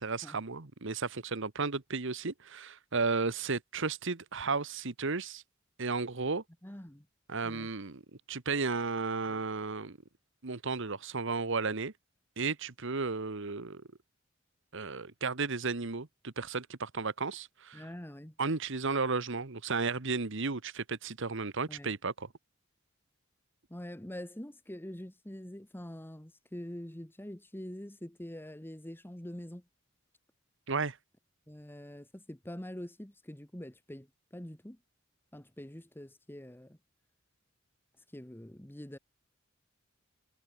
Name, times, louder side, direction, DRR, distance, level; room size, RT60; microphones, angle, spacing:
voice 1, 0.0-5.4 5.8-6.4 7.3-8.0 8.3-10.0 10.4-11.9 12.4-13.8 14.7-17.8 18.4-22.3 30.7-31.0, right 4 dB, 65° right, 1.3 m, -34 dB
voice 2, 6.6-7.1 7.4-7.7 17.7-18.4 21.7-21.9 23.7-29.6 31.5-34.8 35.3-36.8 38.1-39.0, left 1 dB, 10° left, 1.4 m, -45 dB
head